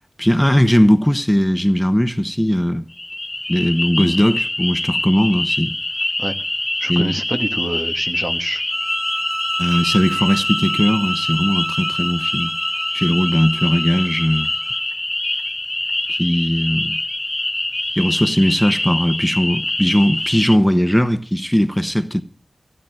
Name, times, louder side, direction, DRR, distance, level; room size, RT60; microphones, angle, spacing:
voice 1, 0.2-2.8 3.5-5.7 6.9-7.1 9.6-12.5 12.9-14.5 16.1-17.0 17.9-22.2, equal, 5° left, 1.1 m, -18 dB
sound 1, 2.9-20.6, left 1 dB, 25° left, 0.6 m, -24 dB
voice 2, 6.8-8.6 10.2-10.3, right 2 dB, 50° right, 1.7 m, -26 dB
sound 2, 8.7-14.8, right 2 dB, 80° right, 2.0 m, -29 dB
16.0 x 9.0 x 7.8 m
cardioid pair, 45°, 0 cm